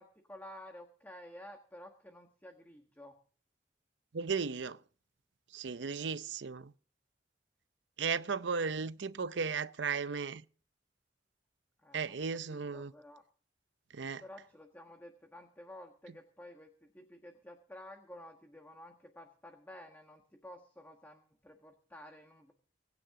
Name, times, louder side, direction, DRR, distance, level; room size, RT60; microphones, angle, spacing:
voice 1, 0.0-3.2 11.8-12.2 12.5-13.2 14.2-22.5, left 1 dB, 10° left, 1.5 m, -52 dB
voice 2, 4.1-4.8 5.5-6.7 8.0-10.4 11.9-12.9 13.9-14.2, right 5 dB, 80° right, 0.6 m, -35 dB
25.0 x 9.7 x 3.7 m
head